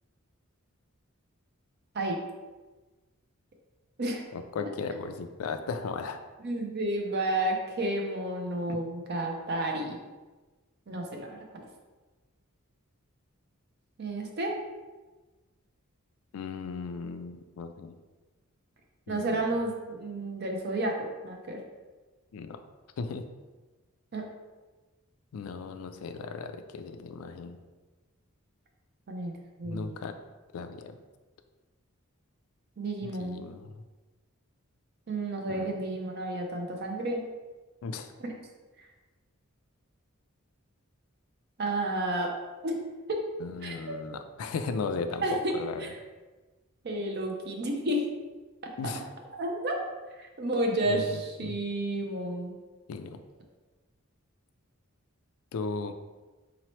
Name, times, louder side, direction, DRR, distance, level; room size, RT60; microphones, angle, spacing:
voice 1, 4.3-6.2 8.7-8.8 16.3-18.0 19.1-19.5 22.3-22.6 23.0-23.3 25.3-27.6 29.6-30.1 30.5-30.9 33.0-33.8 35.5-35.7 37.8-38.1 43.4-45.9 48.8-49.0 50.9-51.6 52.9-53.2 55.5-55.9, left 4 dB, 80° left, 8 dB, 0.3 m, -36 dB
voice 2, 6.4-10.0 10.9-11.7 14.0-14.6 19.1-21.6 24.1-24.3 29.1-29.3 29.6-30.0 32.8-33.4 35.1-37.3 38.2-38.3 41.6-42.4 42.6-42.8 43.1-43.3 43.6-44.0 45.2-46.0 46.8-48.0 48.8-48.9 49.3-49.8 50.2-52.5, right 1 dB, 50° right, 2 dB, 0.6 m, -31 dB
4.0 x 2.9 x 3.0 m, 1.2 s
head